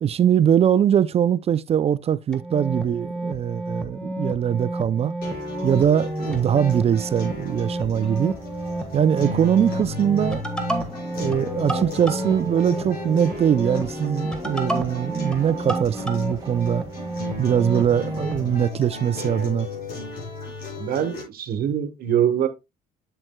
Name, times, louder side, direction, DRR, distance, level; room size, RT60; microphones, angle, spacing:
voice 1, 0.0-5.1 5.6-8.4 8.9-10.4 11.2-16.8 17.4-19.7, right 9 dB, 35° right, 0.4 m, -22 dB
sound 1, 2.3-18.4, right 1 dB, 5° left, 1.4 m, -30 dB
sound 2, 5.2-21.2, left 3 dB, 60° left, 5.0 m, -35 dB
sound 3, 6.2-18.6, right 3 dB, 20° right, 3.4 m, -43 dB
voice 2, 20.8-22.5, right 9 dB, 60° right, 1.2 m, -23 dB
7.8 x 7.3 x 2.2 m
cardioid pair, 110°, 17 cm